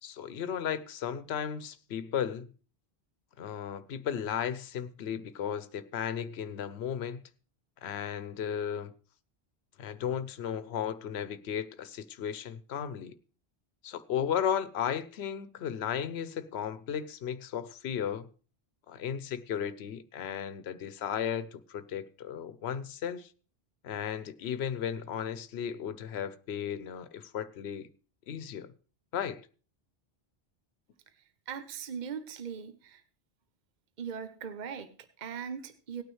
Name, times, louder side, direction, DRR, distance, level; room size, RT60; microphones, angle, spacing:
voice 1, 0.0-2.5 3.4-7.2 7.8-8.9 9.8-13.1 13.8-18.3 18.9-23.3 23.8-27.9 28.3-28.7 29.1-29.4, left 8 dB, 80° left, 1.0 m, -35 dB
voice 2, 31.1-33.0 34.0-36.0, right 7 dB, 50° right, 0.9 m, -40 dB
17.5 x 9.2 x 3.2 m
omnidirectional pair, 1.1 m